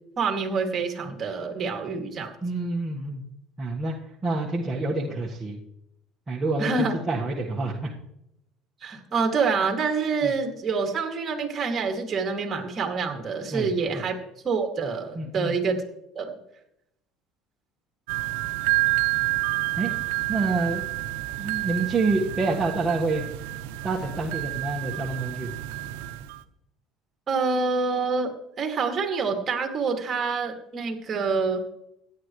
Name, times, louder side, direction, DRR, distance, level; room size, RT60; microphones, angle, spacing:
voice 1, 0.2-2.3 6.6-6.9 8.8-14.2 14.4-15.8 16.1-16.3 27.3-31.6, right 4 dB, 35° right, 4 dB, 2.5 m, -26 dB
voice 2, 2.4-3.2 3.6-3.9 4.2-5.6 6.3-7.9 10.2-10.3 13.5-14.0 15.1-15.5 19.8-19.9 20.3-20.9 21.4-23.2 23.8-25.5, right 3 dB, 20° right, -3 dB, 1.5 m, -27 dB
sound 1, 18.1-26.4, right 18 dB, 85° right, 0.7 m, -29 dB
16.5 x 10.5 x 3.2 m, 0.81 s
supercardioid pair, 115°, 0 cm